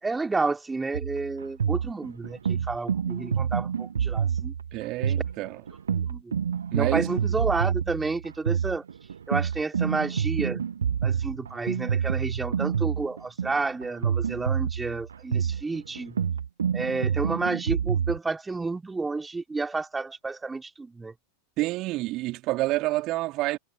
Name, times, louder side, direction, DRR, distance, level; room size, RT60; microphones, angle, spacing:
voice 1, 0.0-4.5 5.9-6.3 6.7-8.8 9.3-10.6 11.0-16.2 16.7-21.1, right 3 dB, 10° right, 3.1 m, -30 dB
sound 1, 0.9-18.2, right 7 dB, 70° right, 0.5 m, -28 dB
voice 2, 4.7-5.6 6.7-7.1 21.6-23.6, right 18 dB, 40° right, 3.3 m, -28 dB
figure-of-eight pair, 90°, 0 cm